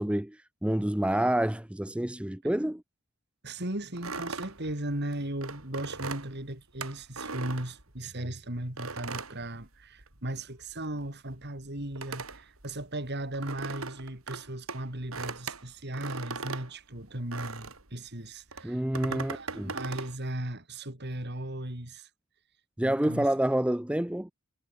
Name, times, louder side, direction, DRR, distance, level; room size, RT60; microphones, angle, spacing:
voice 1, 0.0-2.8 18.6-19.7 22.8-24.3, right 1 dB, 5° right, 0.5 m, -28 dB
voice 2, 3.4-22.1 22.8-23.3, right 1 dB, 50° right, 4.2 m, -37 dB
sound 1, 4.0-8.3 8.8-10.3 10.5-17.9 18.5-20.1, right 4 dB, 80° right, 4.6 m, -39 dB
head